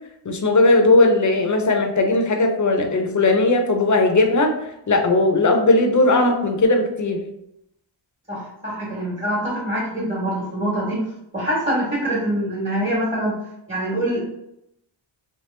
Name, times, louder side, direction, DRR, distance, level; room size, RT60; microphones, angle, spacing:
voice 1, 0.3-4.5 4.9-7.2, left 2 dB, 40° left, 4 dB, 0.6 m, -17 dB
voice 2, 8.3-11.0 11.3-13.4 13.7-14.2, right 1 dB, 15° right, -7 dB, 1.2 m, -24 dB
3.1 x 2.9 x 3.2 m, 0.81 s
wide cardioid pair, 120°, 47 cm